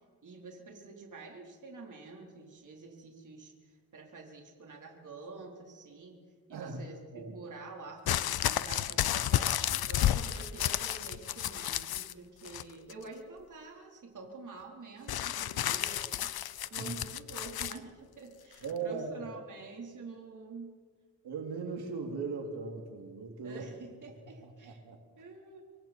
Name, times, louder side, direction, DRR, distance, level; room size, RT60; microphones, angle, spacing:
voice 1, 0.2-6.2 6.5-16.3 16.7-20.8 23.4-24.8 25.2-25.6, right 3 dB, 50° right, 0 dB, 4.3 m, -48 dB
voice 2, 6.5-6.8 7.1-7.4 16.6-16.9 18.6-19.1 21.2-23.6 24.4-25.0, right 4 dB, 80° right, 2 dB, 3.1 m, -38 dB
sound 1, 8.1-12.1 12.4-13.0 15.1-17.8 18.6-18.7, left 11 dB, 70° left, 0.8 m, -31 dB
26.5 x 24.0 x 4.5 m, 1.5 s
cardioid pair, 100°, 38 cm